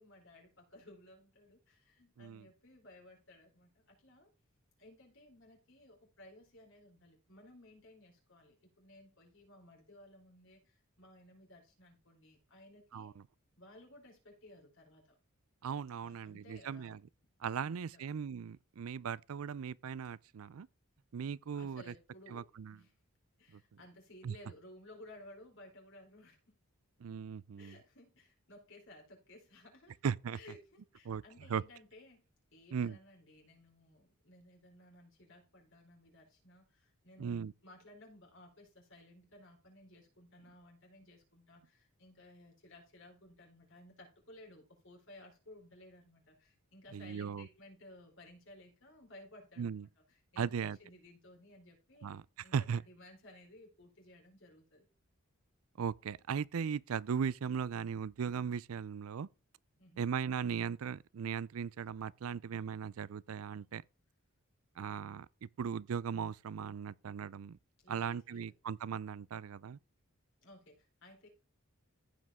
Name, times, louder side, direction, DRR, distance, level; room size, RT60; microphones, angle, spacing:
voice 1, 0.0-4.3 4.8-13.2 13.6-15.0 16.0-17.0 17.6-18.0 21.5-22.9 23.4-26.5 27.6-30.0 30.3-32.2 32.5-54.9 59.8-60.1 67.8-68.5 70.4-71.3, left 1 dB, 60° left, 4.3 m, -58 dB
voice 2, 2.2-2.5 12.9-13.2 15.6-17.0 17.4-20.7 21.1-21.9 22.3-22.7 23.5-23.6 24.2-24.3 27.0-27.8 30.0-30.4 31.1-31.2 31.5-31.6 32.7-33.0 37.2-37.5 46.9-47.5 49.6-49.9 50.4-50.8 52.0-52.2 52.5-52.8 55.8-59.3 60.0-63.8 64.8-65.3 65.6-67.6 67.9-69.8, right 7 dB, 75° right, 0.4 m, -38 dB
15.0 x 5.2 x 3.6 m
head